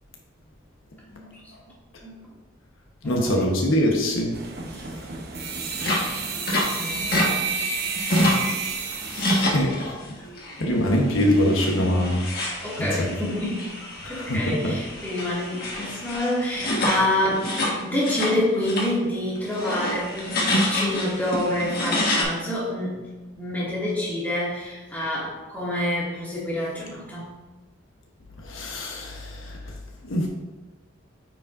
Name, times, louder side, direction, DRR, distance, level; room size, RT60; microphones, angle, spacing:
voice 1, 1.1-1.4 2.0-2.3 3.0-3.6 4.7-4.9 6.3-7.3 10.6-11.6 12.6-13.7 14.0-17.5 17.8-23.0 23.4-27.3, left 1 dB, 10° left, -8 dB, 2.2 m, -28 dB
voice 2, 3.0-4.3 9.5-9.7 10.6-12.2 14.0-14.7 28.5-29.3 30.1-30.3, equal, 80° left, 0 dB, 1.1 m, -22 dB
sound 1, 4.3-9.5, right 5 dB, 50° right, 0.9 m, -30 dB
sound 2, 5.8-7.3 7.6-8.5 8.9-10.1 10.4-10.7 11.1-18.3 18.6-18.9 19.4-22.2, left 1 dB, 50° left, 1.5 m, -27 dB
9.1 x 5.0 x 2.6 m, 1.2 s
head